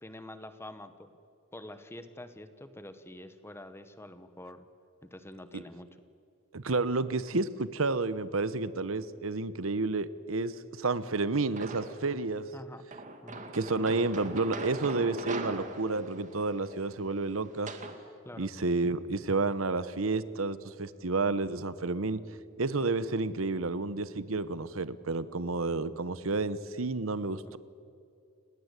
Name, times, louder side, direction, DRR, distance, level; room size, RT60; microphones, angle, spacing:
voice 1, 0.0-1.1 1.5-4.7 5.0-5.9 12.5-12.9 13.2-13.4 18.2-18.5 27.4-27.6, left 1 dB, 10° left, 10 dB, 1.3 m, -46 dB
voice 2, 6.5-12.5 13.5-17.7 18.4-22.2 22.6-27.6, right 3 dB, 80° right, 14 dB, 1.0 m, -30 dB
sound 1, 11.6-12.2 12.9-18.0, right 2 dB, 35° right, 2.2 m, -41 dB
30.0 x 19.0 x 8.3 m, 2.4 s
head